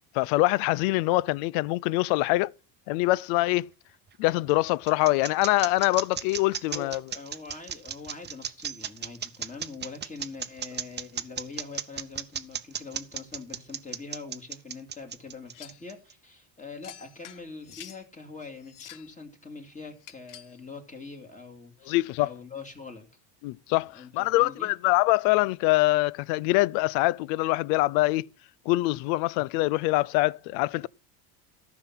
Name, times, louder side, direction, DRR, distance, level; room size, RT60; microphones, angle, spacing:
voice 1, 0.1-2.5 2.9-3.7 4.2-7.0 21.9-22.3 23.4-28.3 28.7-30.9, left 19 dB, 75° left, 0.5 m, -24 dB
sound 1, 4.1-16.1, right 8 dB, 25° right, 0.8 m, -35 dB
voice 2, 6.6-23.1 23.9-24.7, left 4 dB, 15° left, 2.5 m, -43 dB
sound 2, 15.5-15.9 16.8-18.0 18.6-19.1 20.0-20.6, left 11 dB, 45° left, 0.8 m, -47 dB
13.5 x 6.0 x 6.0 m
supercardioid pair, 110°, 45 cm